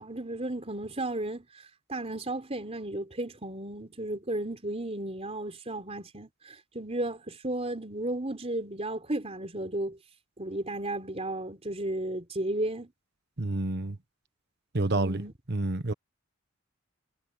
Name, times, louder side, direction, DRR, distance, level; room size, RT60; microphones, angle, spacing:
voice 1, 0.0-1.5 1.9-10.0 10.4-12.9 14.9-15.3, right 1 dB, 30° right, 3.9 m, -34 dB
voice 2, 13.4-14.0 14.7-15.2 15.5-15.9, right 2 dB, 50° right, 1.2 m, -28 dB
head